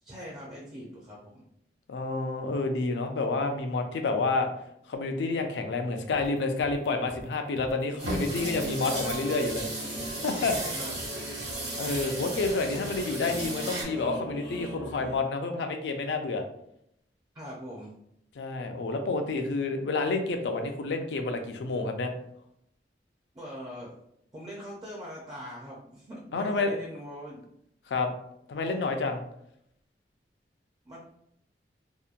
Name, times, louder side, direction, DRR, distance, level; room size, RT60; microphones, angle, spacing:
voice 1, 0.0-1.4 10.5-11.1 17.3-17.9 23.3-23.9 24.3-27.4 28.5-28.8 30.9-31.0, equal, 20° right, -4 dB, 0.4 m, -42 dB
voice 2, 1.9-4.5 4.9-9.6 10.1-10.5 11.8-16.4 18.4-22.1 26.3-26.7 27.9-28.1 28.5-29.2, left 3 dB, 75° left, 5 dB, 0.4 m, -29 dB
sound 1, 6.1-13.6, right 1 dB, 85° right, 0.4 m, -46 dB
sound 2, 8.0-13.8, right 2 dB, 65° right, 1.1 m, -35 dB
sound 3, 8.3-15.2, equal, 90° left, 0.8 m, -40 dB
2.8 x 2.1 x 2.4 m, 0.75 s
head